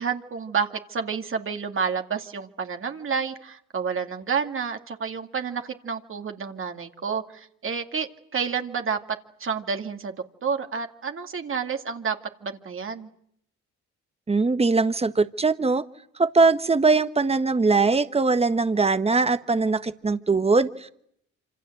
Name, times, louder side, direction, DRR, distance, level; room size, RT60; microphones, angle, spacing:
voice 1, 0.0-9.0 9.4-10.1 10.4-13.1, right 6 dB, 45° right, 5 dB, 2.3 m, -29 dB
voice 2, 14.3-15.8 16.2-20.9, right 3 dB, 20° right, 12 dB, 1.4 m, -21 dB
26.5 x 26.5 x 7.9 m, 0.70 s
cardioid pair, 90°, 30 cm